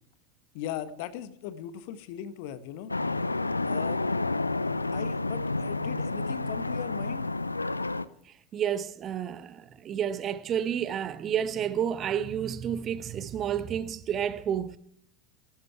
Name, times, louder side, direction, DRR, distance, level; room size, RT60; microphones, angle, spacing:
voice 1, 0.5-2.9 3.6-4.0 4.9-7.3, left 10 dB, 50° left, 1.1 m, -38 dB
sound 1, 2.9-8.0, left 2 dB, 85° left, 0.6 m, -30 dB
voice 2, 8.5-14.8, right 9 dB, 30° right, 1.0 m, -30 dB
19.0 x 11.5 x 4.6 m
figure-of-eight pair, 80°, 0 cm